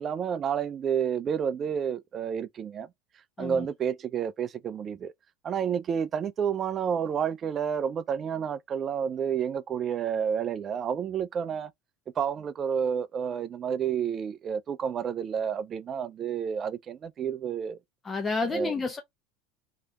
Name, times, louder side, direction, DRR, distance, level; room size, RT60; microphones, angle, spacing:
voice 1, 0.0-2.9 3.4-5.1 5.4-11.7 12.2-17.8 18.4-18.7, right 7 dB, 35° right, 0.4 m, -30 dB
voice 2, 18.0-19.0, left 3 dB, 20° left, 0.5 m, -30 dB
3.1 x 2.8 x 2.3 m
hypercardioid pair, 75°, 0 cm